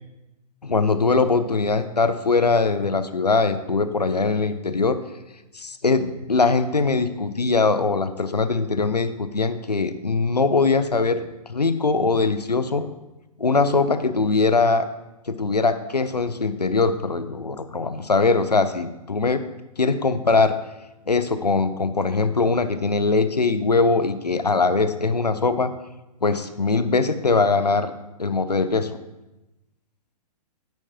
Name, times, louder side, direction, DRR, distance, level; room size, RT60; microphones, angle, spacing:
voice 1, 0.6-5.0 5.5-12.9 13.4-14.9 15.3-19.4 19.8-20.5 21.1-25.7 26.2-27.9 28.2-29.0, left 4 dB, 85° left, 11 dB, 0.6 m, -21 dB
9.1 x 9.0 x 2.9 m, 0.99 s
figure-of-eight pair, 115°, 20 cm